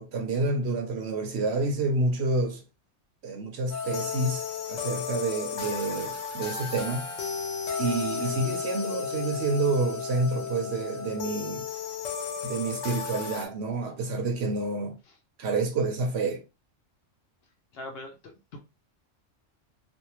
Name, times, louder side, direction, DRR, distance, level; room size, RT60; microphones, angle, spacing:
voice 1, 0.0-2.6 3.2-7.1 7.8-11.7 12.4-15.0 15.4-16.4, right 3 dB, 65° right, 0.8 m, -28 dB
sound 1, 3.7-13.5, left 6 dB, 90° left, 1.1 m, -34 dB
voice 2, 17.7-18.6, left 2 dB, 60° left, 0.7 m, -42 dB
2.6 x 2.1 x 2.9 m
omnidirectional pair, 1.3 m